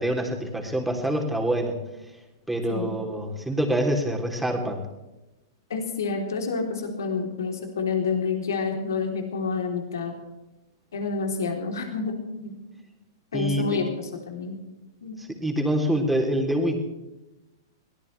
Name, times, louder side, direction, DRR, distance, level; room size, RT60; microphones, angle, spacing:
voice 1, 0.0-1.7 2.5-4.9 13.3-13.6 15.2-16.8, right 1 dB, 5° right, 1 dB, 3.4 m, -26 dB
voice 2, 5.7-10.1 10.9-12.5 13.3-14.6 15.0-15.2, left 4 dB, 70° left, 2 dB, 3.5 m, -28 dB
23.5 x 18.0 x 3.4 m, 1.0 s
figure-of-eight pair, 105°, 2 cm